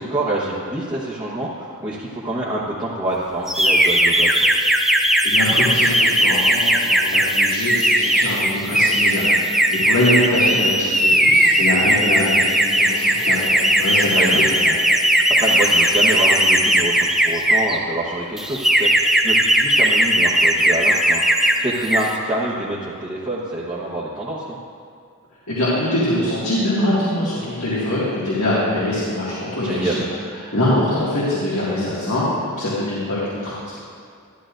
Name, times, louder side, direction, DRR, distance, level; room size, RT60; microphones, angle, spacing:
voice 1, 0.0-4.5 14.1-14.4 15.1-24.6 29.6-30.1 30.4-30.5, right 1 dB, 20° right, -8 dB, 1.1 m, -26 dB
sound 1, 3.5-17.8 18.4-21.6 21.8-22.1, right 1 dB, ahead, 0.4 m, -17 dB
voice 2, 5.2-14.6 25.5-30.1 30.5-32.2 32.5-33.5, left 1 dB, 85° left, -9 dB, 2.0 m, -23 dB
12.5 x 12.0 x 2.6 m, 2.2 s
head